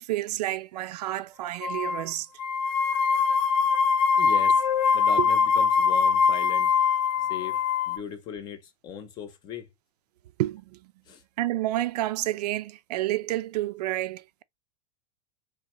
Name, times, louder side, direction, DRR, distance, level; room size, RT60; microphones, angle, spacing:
voice 1, 0.0-2.3 5.2-5.3 10.4-10.9 11.4-14.4, right 15 dB, 90° right, 0.5 m, -29 dB
sound 1, 1.6-2.0 2.4-8.0, left 6 dB, 60° left, 0.8 m, -23 dB
voice 2, 4.2-4.7 4.9-6.7 7.3-9.7 11.1-11.2, left 7 dB, 20° left, 0.6 m, -39 dB
3.8 x 3.1 x 3.0 m
supercardioid pair, 175°, 20 cm